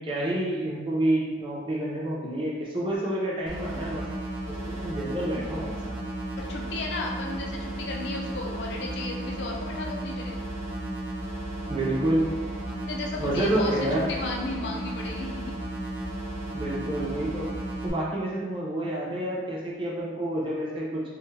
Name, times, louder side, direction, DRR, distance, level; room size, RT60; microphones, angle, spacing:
voice 1, 0.0-4.0 4.5-5.9 11.7-12.3 13.2-14.1 16.5-17.5 17.8-21.0, right 1 dB, 30° right, -5 dB, 0.5 m, -28 dB
sound 1, 3.5-17.9, right 1 dB, 55° right, 0.8 m, -34 dB
voice 2, 6.3-10.4 12.8-15.5, left 2 dB, 70° left, 0 dB, 0.5 m, -34 dB
2.9 x 2.3 x 3.0 m, 1.4 s
head